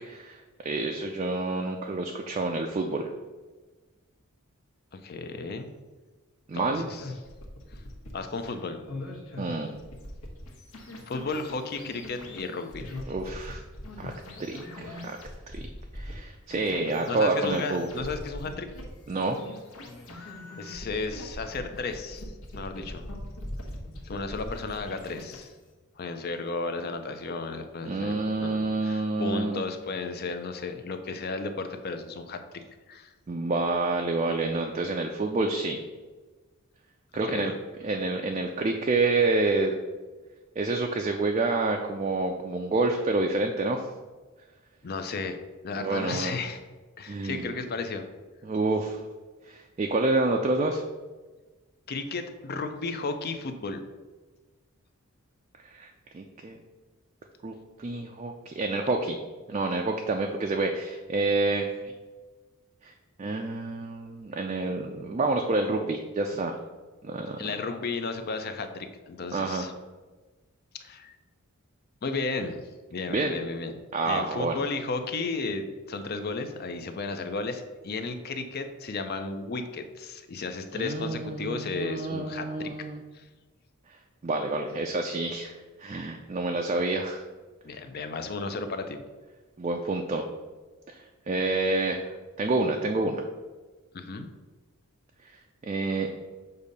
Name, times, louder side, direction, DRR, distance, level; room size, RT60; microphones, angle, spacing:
voice 1, 0.0-3.1 6.5-6.9 9.4-9.8 13.1-13.6 14.0-14.1 14.4-15.2 15.5-15.6 15.9-17.9 19.1-19.4 27.8-29.6 33.3-35.8 37.1-37.5 37.8-39.8 40.6-43.9 45.8-46.3 47.1-47.6 48.4-49.0 49.4-50.8 55.6-56.6 57.4-59.2 59.5-61.9 62.8-62.9 63.2-66.6 67.0-67.4 69.3-69.7 73.1-73.3 73.9-74.6 80.7-83.0 83.9-87.2 89.6-90.3 90.9-93.2 95.2-96.2, right 2 dB, 30° right, 3 dB, 0.3 m, -28 dB
voice 2, 4.9-5.7 6.5-7.0 7.7-7.8 8.1-8.8 11.1-12.9 17.1-18.7 20.1-23.1 24.0-25.5 26.0-28.2 28.4-32.4 32.9-33.1 37.3-37.5 44.8-45.4 45.6-46.6 47.0-48.0 51.9-53.8 67.4-69.7 70.8-71.2 72.0-72.6 72.9-73.8 74.0-82.7 83.1-83.3 87.6-89.0 93.9-94.3, left 3 dB, 45° left, 7 dB, 0.5 m, -34 dB
sound 1, 6.8-25.7, left 1 dB, 70° left, 1.0 m, -42 dB
6.6 x 2.7 x 5.2 m, 1.3 s
head